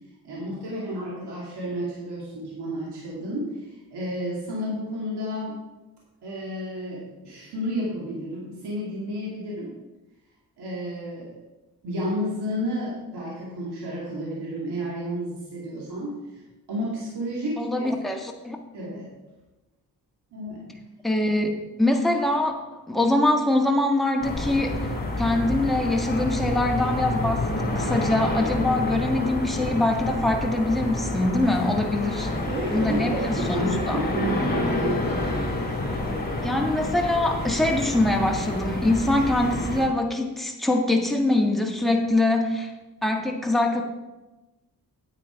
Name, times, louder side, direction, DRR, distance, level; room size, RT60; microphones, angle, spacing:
voice 1, 0.2-5.6 6.2-9.8 10.6-11.4 11.8-16.4 16.7-17.9 18.7-19.1 20.3-20.8 32.5-35.1, equal, 80° right, -5 dB, 2.6 m, -31 dB
voice 2, 17.6-18.6 21.0-24.8 25.2-32.3 32.7-34.0 36.4-42.7 43.0-43.8, left 2 dB, ahead, 1 dB, 1.7 m, -23 dB
sound 1, 24.2-39.9, left 1 dB, 25° left, 3.4 m, -28 dB
8.8 x 8.6 x 4.6 m, 1.1 s
cardioid pair, 70°, 39 cm